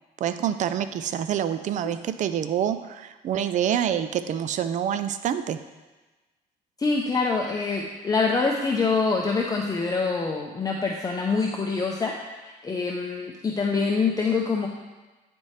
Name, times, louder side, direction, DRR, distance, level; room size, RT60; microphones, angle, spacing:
voice 1, 0.2-5.6, right 9 dB, 45° right, 11 dB, 0.4 m, -27 dB
voice 2, 6.8-12.1 12.6-14.7, left 4 dB, 20° left, -1 dB, 0.6 m, -25 dB
9.1 x 4.3 x 3.2 m, 1.2 s
cardioid pair, 110°, 17 cm